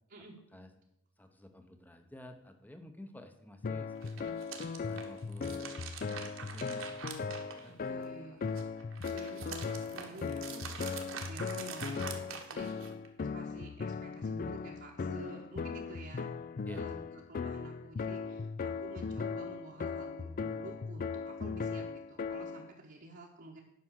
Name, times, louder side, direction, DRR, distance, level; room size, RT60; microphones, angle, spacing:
voice 1, 1.2-4.3 4.9-5.7 6.0-6.9 7.4-8.4 16.7-16.9, left 1 dB, 10° left, 7 dB, 0.8 m, -51 dB
sound 1, 3.6-22.7, left 5 dB, 40° left, 0.4 m, -38 dB
sound 2, 3.9-8.1 8.4-13.1, right 6 dB, 65° right, 1.3 m, -45 dB
voice 2, 7.7-8.6 9.1-16.3 16.7-17.0 17.3-23.6, right 2 dB, 50° right, -3 dB, 1.1 m, -50 dB
9.3 x 6.0 x 6.4 m, 0.84 s
head